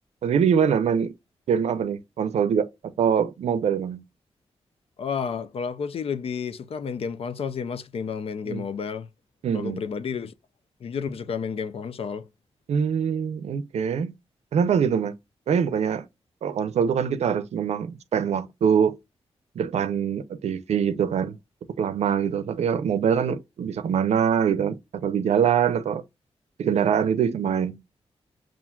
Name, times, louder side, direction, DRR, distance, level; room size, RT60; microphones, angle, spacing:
voice 1, 0.2-1.1 1.5-2.7 3.0-4.0 8.5-8.6 9.4-9.8 12.7-14.1 14.5-15.2 15.5-16.1 16.4-19.0 19.6-21.4 21.8-26.0 26.6-27.8, right 7 dB, 85° right, 0.5 m, -24 dB
voice 2, 5.0-9.1 9.5-10.3 10.8-12.3, left 6 dB, 60° left, 0.4 m, -31 dB
5.6 x 2.5 x 2.3 m
wide cardioid pair, 110°, 11 cm